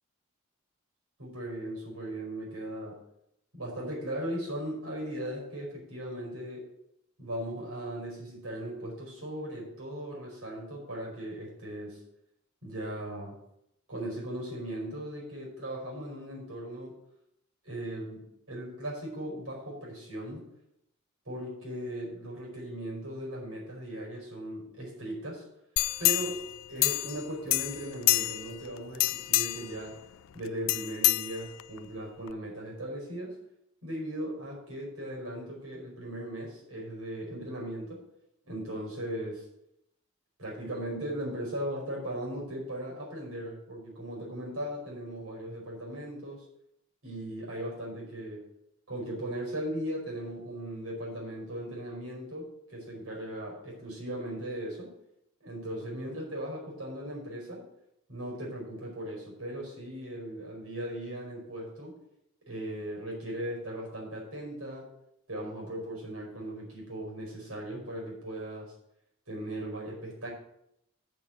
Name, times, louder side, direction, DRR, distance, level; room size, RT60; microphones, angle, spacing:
voice 1, 1.2-3.0 3.5-6.7 7.2-12.0 12.6-13.4 13.9-17.0 17.6-20.5 21.3-25.4 26.0-30.0 30.3-33.4 33.8-38.0 38.4-39.5 40.4-46.4 47.0-48.5 48.9-54.9 55.4-57.7 58.1-61.9 62.5-64.9 65.3-68.7 69.3-70.3, right 1 dB, 85° right, -2 dB, 5.2 m, -38 dB
sound 1, 25.8-27.2 27.5-28.6 28.9-29.7 30.7-31.8 32.3-32.4, left 19 dB, 75° left, 0.4 m, -27 dB
8.1 x 6.8 x 7.8 m, 0.79 s
head